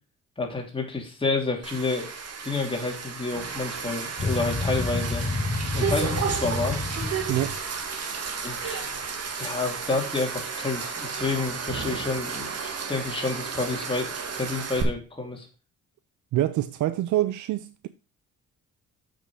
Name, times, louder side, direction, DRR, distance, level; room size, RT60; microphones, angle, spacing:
voice 1, 0.4-2.1 2.4-5.2 5.7-6.8 8.4-8.8 9.4-14.1 14.3-15.5, left 3 dB, 15° left, 3.1 m, -29 dB
sound 1, 1.6-14.8, right 6 dB, 55° right, 1.9 m, -33 dB
sound 2, 4.2-7.6, left 3 dB, 50° left, 2.0 m, -29 dB
voice 2, 16.3-17.9, right 14 dB, 75° right, 0.6 m, -26 dB
7.1 x 6.2 x 4.8 m
cardioid pair, 90°, 30 cm